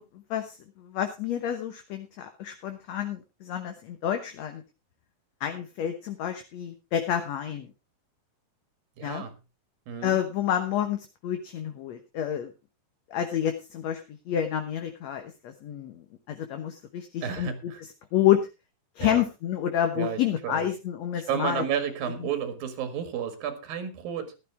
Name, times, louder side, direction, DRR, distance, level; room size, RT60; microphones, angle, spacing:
voice 1, 0.0-4.6 5.4-7.7 9.0-9.2 10.0-12.5 13.1-17.7 18.1-18.4 19.0-21.6, left 10 dB, 60° left, 6 dB, 2.0 m, -29 dB
voice 2, 9.0-9.3 9.9-10.2 17.2-17.8 19.0-19.2 20.0-20.7 21.3-24.3, right 8 dB, 80° right, 8 dB, 3.6 m, -32 dB
14.5 x 12.0 x 3.4 m, 0.27 s
omnidirectional pair, 4.1 m